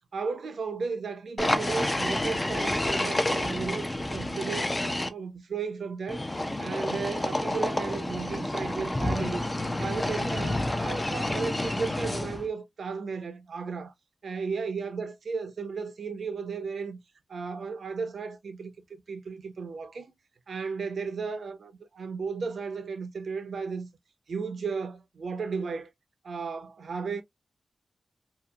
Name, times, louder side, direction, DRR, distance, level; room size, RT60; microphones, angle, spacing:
voice 1, 0.1-6.2 6.6-9.4 9.8-13.9 14.2-17.0 17.3-18.7 19.1-20.1 20.5-23.9 24.3-25.9 26.2-27.2, right 5 dB, 75° right, 0.6 m, -34 dB
sound 1, 1.4-5.1 6.1-12.5, left 1 dB, 15° left, 0.4 m, -29 dB
2.8 x 2.5 x 2.2 m
wide cardioid pair, 160°, 0 cm